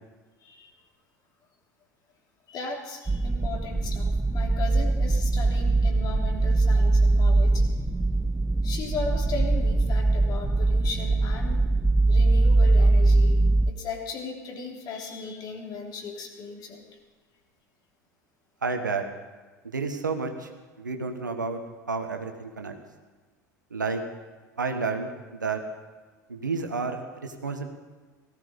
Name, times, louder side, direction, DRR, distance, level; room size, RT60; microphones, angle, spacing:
voice 1, 0.4-0.7 2.5-7.7 8.6-11.6 12.1-13.4 13.7-17.0, left 4 dB, 40° left, 1 dB, 3.3 m, -37 dB
sound 1, 3.1-13.7, right 2 dB, 10° right, 0.4 m, -22 dB
voice 2, 18.6-19.0 19.7-20.5 20.8-21.6 21.9-22.7 23.7-24.0 24.6-25.6 26.3-27.7, right 4 dB, 85° right, 5 dB, 1.5 m, -30 dB
18.0 x 15.0 x 5.2 m, 1.4 s
figure-of-eight pair, 75°, 10 cm